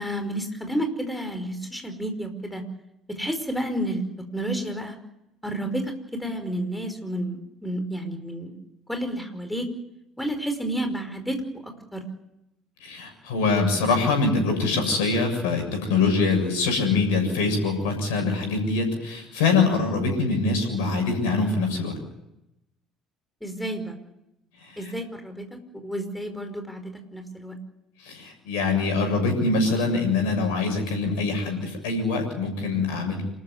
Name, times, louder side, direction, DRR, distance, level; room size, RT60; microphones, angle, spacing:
voice 1, 0.0-2.6 3.1-4.1 4.3-5.0 5.4-8.6 8.9-9.7 10.2-12.0 23.4-23.9 24.8-27.5, right 1 dB, 5° left, 7 dB, 5.3 m, -31 dB
voice 2, 12.8-22.0 24.6-24.9 28.0-33.2, left 3 dB, 70° left, 5 dB, 7.2 m, -24 dB
27.5 x 14.0 x 9.6 m, 0.86 s
figure-of-eight pair, 55°, 0 cm